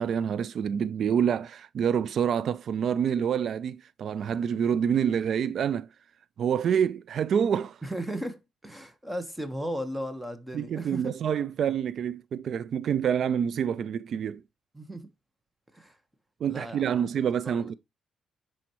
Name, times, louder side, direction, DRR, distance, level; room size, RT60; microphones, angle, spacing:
voice 1, 0.0-5.9 6.4-7.8 10.5-14.4 16.4-17.7, right 8 dB, 60° right, 0.3 m, -27 dB
voice 2, 7.8-11.2 14.7-15.1 15.7-16.0 16.5-17.1 17.4-17.7, equal, 10° right, 1.2 m, -36 dB
10.0 x 4.4 x 3.0 m
cardioid pair, 90°, 0 cm